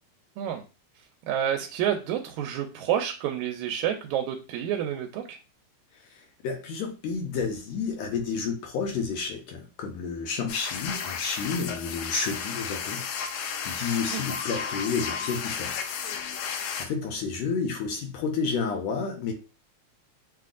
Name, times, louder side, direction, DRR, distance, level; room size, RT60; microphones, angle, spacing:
voice 1, 1.3-5.4 14.1-14.2, right 10 dB, 85° right, 3 dB, 1.9 m, -29 dB
voice 2, 6.1-13.0 13.6-15.8 16.8-19.3, left 5 dB, 75° left, 2 dB, 1.9 m, -30 dB
sound 1, 10.5-16.9, left 7 dB, 90° left, 2.1 m, -33 dB
7.5 x 2.5 x 2.4 m, 0.32 s
omnidirectional pair, 3.3 m